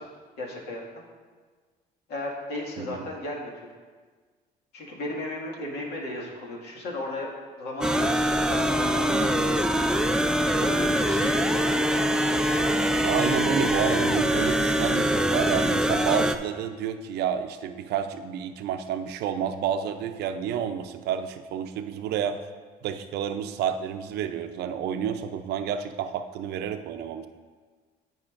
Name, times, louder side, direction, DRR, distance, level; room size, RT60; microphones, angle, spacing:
voice 1, 0.4-1.0 2.1-3.7 4.7-7.3 7.6-9.8 10.6-11.7, left 1 dB, 85° left, -2 dB, 2.0 m, -35 dB
sound 1, 7.8-16.4, equal, 5° right, 0.4 m, -23 dB
voice 2, 13.0-22.4 22.8-27.3, right 8 dB, 75° right, 9 dB, 0.6 m, -30 dB
16.0 x 5.5 x 2.5 m, 1.5 s
cardioid pair, 110°, 17 cm